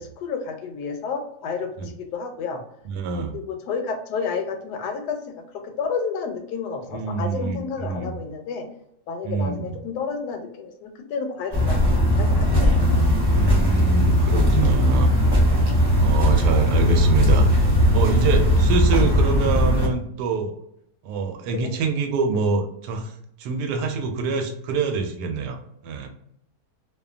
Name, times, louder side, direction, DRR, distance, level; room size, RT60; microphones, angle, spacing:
voice 1, 0.0-2.6 3.3-8.7 9.1-12.8 21.5-21.7, left 5 dB, 80° left, 6 dB, 1.1 m, -31 dB
voice 2, 2.8-3.4 6.9-8.2 9.2-9.8 13.3-15.1 16.0-17.5 17.9-20.5 21.0-23.1 23.4-26.1, right 5 dB, 85° right, 5 dB, 1.2 m, -25 dB
sound 1, 11.5-19.9, equal, 35° right, 0.4 m, -18 dB
sound 2, 12.8-18.8, right 3 dB, 65° right, 1.1 m, -34 dB
2.7 x 2.2 x 2.3 m, 0.73 s
omnidirectional pair, 1.8 m